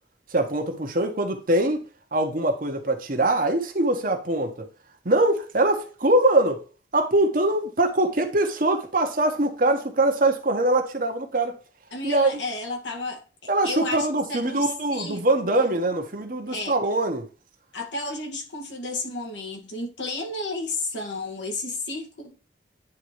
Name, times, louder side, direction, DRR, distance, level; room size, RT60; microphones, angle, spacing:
voice 1, 0.3-1.8 2.1-4.7 5.0-6.6 6.9-11.6 12.0-12.4 13.5-17.3, right 1 dB, 45° right, 1.1 m, -23 dB
voice 2, 11.9-15.6 16.5-16.8 17.7-22.4, left 2 dB, 75° left, 1.7 m, -32 dB
9.8 x 3.8 x 3.0 m
head